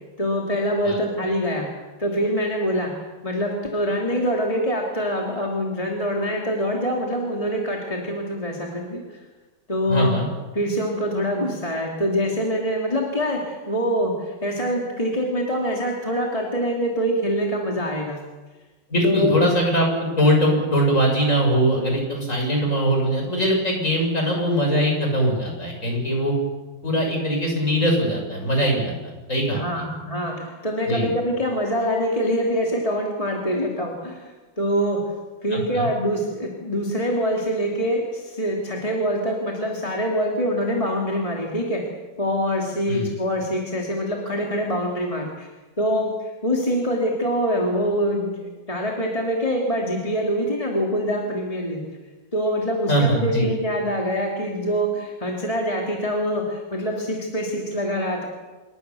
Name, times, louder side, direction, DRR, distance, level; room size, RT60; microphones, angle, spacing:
voice 1, 0.2-1.7 2.0-2.9 3.2-9.2 9.7-10.2 10.5-18.2 19.0-19.4 29.5-34.3 34.6-35.1 35.4-41.8 42.2-45.5 45.8-51.8 52.3-58.2, equal, 20° left, -1 dB, 3.0 m, -24 dB
voice 2, 9.9-10.3 18.9-26.3 26.8-29.8 30.9-31.1 35.5-35.9 42.9-43.1 52.9-53.5, equal, 40° left, 1 dB, 7.1 m, -21 dB
27.5 x 22.0 x 7.1 m, 1.3 s
omnidirectional pair, 2.0 m